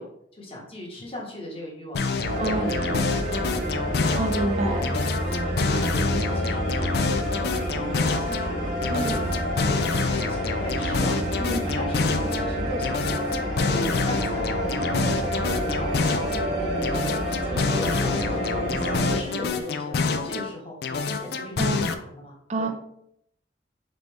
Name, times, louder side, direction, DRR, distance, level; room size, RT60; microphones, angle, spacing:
voice 1, 0.0-2.0 2.3-3.5 4.1-4.8 5.2-6.9 7.3-7.5 7.9-8.8 9.0-11.1 11.6-13.4 13.7-22.7, left 1 dB, 30° left, -3 dB, 1.2 m, -38 dB
sound 1, 1.9-4.5 4.8-8.5 8.8-12.5 12.8-16.5 16.8-20.5 20.8-21.9, left 4 dB, 60° left, 0.4 m, -27 dB
sound 2, 2.2-19.2, equal, 70° right, 1.2 m, -28 dB
voice 2, 2.4-2.7 4.2-4.9 8.9-9.2 11.4-11.7 21.6-21.9 22.5-22.7, right 2 dB, 40° right, 4 dB, 0.5 m, -28 dB
4.1 x 3.3 x 3.3 m, 0.73 s
head